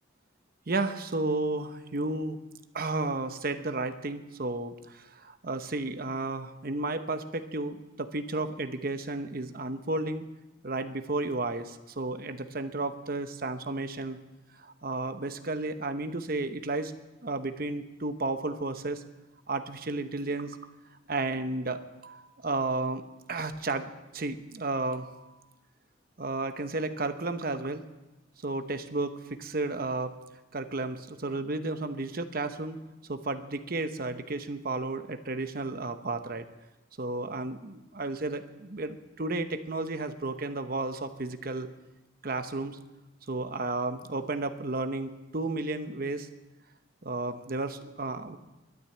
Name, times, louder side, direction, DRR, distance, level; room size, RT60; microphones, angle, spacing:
voice 1, 0.7-2.4 2.7-10.2 10.6-14.2 14.6-16.9 17.2-19.0 19.5-20.6 21.1-23.0 23.3-25.3 26.2-27.8 28.4-30.1 30.5-32.8 33.1-36.5 37.0-41.7 42.2-42.8 43.3-46.3 47.0-48.4, right 2 dB, 50° right, 9 dB, 0.9 m, -33 dB
12.0 x 10.0 x 8.9 m, 1.0 s
head